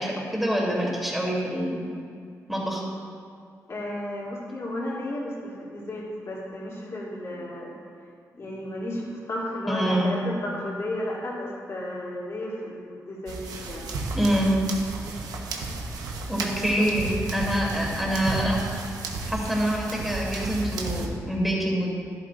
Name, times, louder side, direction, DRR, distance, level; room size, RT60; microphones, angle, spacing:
voice 1, 0.0-1.7 2.5-2.8 7.3-7.4 9.7-10.1 14.1-14.5 16.3-18.7 19.3-21.9, equal, 5° right, -3 dB, 2.8 m, -26 dB
voice 2, 3.7-7.7 8.3-13.9 16.4-16.9, left 1 dB, 50° left, -5 dB, 2.8 m, -33 dB
sound 1, 13.3-21.1, right 3 dB, 85° right, 1.1 m, -33 dB
13.0 x 11.0 x 2.5 m, 2.3 s
cardioid pair, 75°, 6 cm